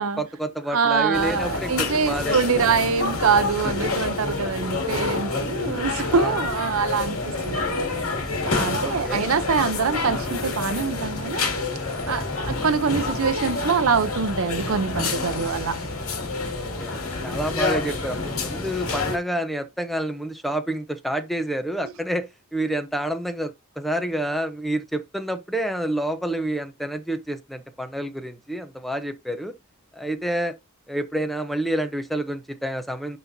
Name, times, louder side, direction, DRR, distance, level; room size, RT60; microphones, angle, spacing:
voice 1, 0.0-2.4 6.1-6.5 8.8-9.3 16.5-29.5 29.9-30.6 30.9-33.2, right 1 dB, ahead, 0.7 m, -28 dB
voice 2, 0.7-8.0 8.5-11.4 12.1-15.9, right 5 dB, 70° right, 0.6 m, -24 dB
sound 1, 1.1-19.2, left 3 dB, 70° left, 2.3 m, -28 dB
10.5 x 4.1 x 2.7 m
head